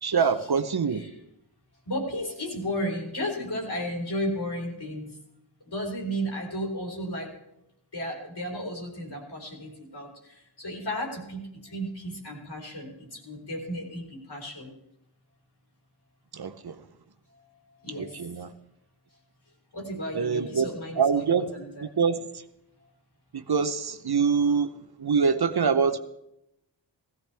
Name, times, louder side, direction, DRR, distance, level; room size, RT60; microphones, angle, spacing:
voice 1, 0.0-1.0 16.3-16.8 17.9-18.5 20.1-20.7 21.0-22.4 23.3-26.0, right 6 dB, 55° right, 0.8 m, -25 dB
voice 2, 1.9-5.1 5.7-7.3 7.9-14.7 17.8-18.1 19.7-21.8, equal, 60° left, 4.0 m, -34 dB
17.0 x 15.5 x 3.4 m
wide cardioid pair, 60°, 45 cm